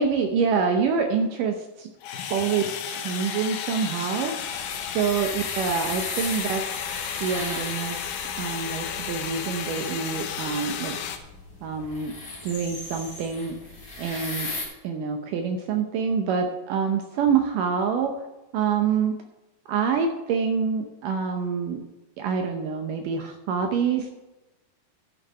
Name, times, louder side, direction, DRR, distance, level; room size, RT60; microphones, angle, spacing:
voice 1, 0.0-1.9 2.3-4.6 4.9-6.9 7.2-8.1 8.4-11.0 11.6-12.1 12.4-13.6 14.0-14.6 14.8-18.1 18.5-19.1 19.7-21.8 22.2-24.1, right 6 dB, 75° right, 5 dB, 2.2 m, -26 dB
sound 1, 2.0-11.2, left 8 dB, 75° left, 2.3 m, -33 dB
sound 2, 4.4-14.6, left 2 dB, 45° left, 3.9 m, -38 dB
13.0 x 6.4 x 5.4 m, 1.0 s
omnidirectional pair, 4.2 m